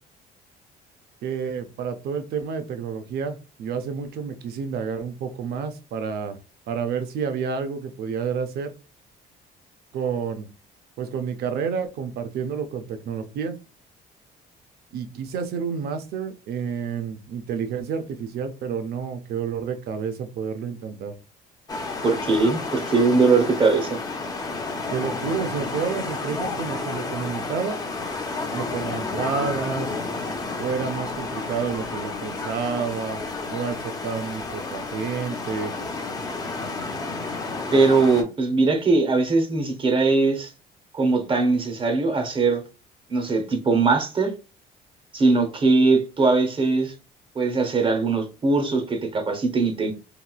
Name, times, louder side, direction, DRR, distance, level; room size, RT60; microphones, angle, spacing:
voice 1, 1.2-6.4 6.7-8.7 9.9-10.5 11.0-13.6 14.9-21.1 24.9-27.8 28.5-29.9 30.6-33.2 33.5-35.7, right 6 dB, 70° right, 8 dB, 0.6 m, -29 dB
sound 1, 21.7-38.2, left 3 dB, 20° left, 0.6 m, -31 dB
voice 2, 22.0-24.0 37.7-40.5 40.9-42.6 43.1-44.3 45.1-46.9 47.3-49.9, right 3 dB, 30° right, 5 dB, 0.7 m, -21 dB
3.0 x 2.8 x 2.3 m, 0.32 s
cardioid pair, 110°, 17 cm